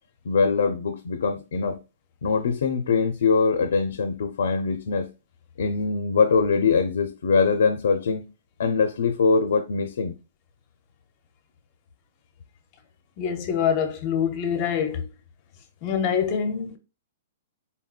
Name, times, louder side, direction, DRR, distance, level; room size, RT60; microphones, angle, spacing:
voice 1, 0.2-1.8 2.2-5.1 5.6-8.2 8.6-10.1, left 5 dB, 70° left, 0.5 m, -22 dB
voice 2, 13.2-15.1 15.8-16.8, left 7 dB, 25° left, 0.6 m, -25 dB
4.2 x 3.7 x 2.4 m
hypercardioid pair, 175°, 0 cm